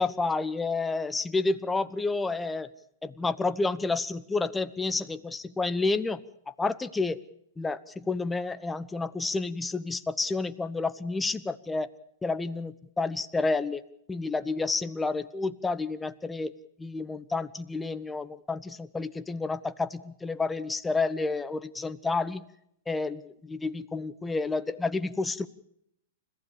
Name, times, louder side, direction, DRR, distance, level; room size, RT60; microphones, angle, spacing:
voice 1, 0.0-2.7 3.0-6.2 6.6-7.2 7.6-11.9 12.2-13.8 14.1-16.5 16.8-22.5 22.9-25.5, left 3 dB, 10° left, 13 dB, 1.1 m, -30 dB
30.0 x 15.5 x 7.1 m, 0.76 s
figure-of-eight pair, 105°, 0 cm